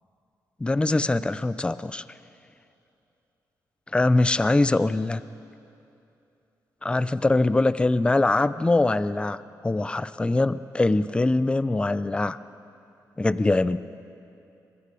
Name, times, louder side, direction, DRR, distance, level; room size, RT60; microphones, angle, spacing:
voice 1, 0.6-2.0 3.9-5.2 6.8-12.4 13.2-13.8, left 2 dB, 15° left, 15 dB, 0.5 m, -23 dB
26.5 x 23.0 x 5.0 m, 2.7 s
cardioid pair, 105°, 7 cm